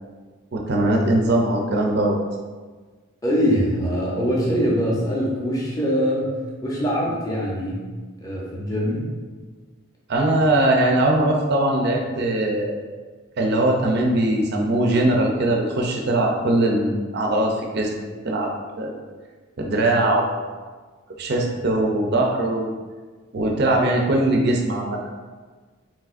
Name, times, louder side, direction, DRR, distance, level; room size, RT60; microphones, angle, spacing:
voice 1, 0.5-2.2 10.1-12.8 13.4-17.9 18.2-18.5 18.8-18.9 19.6-20.4 21.2-22.7 23.3-25.2, right 1 dB, 50° right, 0 dB, 0.5 m, -21 dB
voice 2, 3.2-6.4 6.6-7.9 8.2-9.1, equal, 15° left, -5 dB, 0.7 m, -23 dB
4.7 x 3.7 x 2.5 m, 1.4 s
head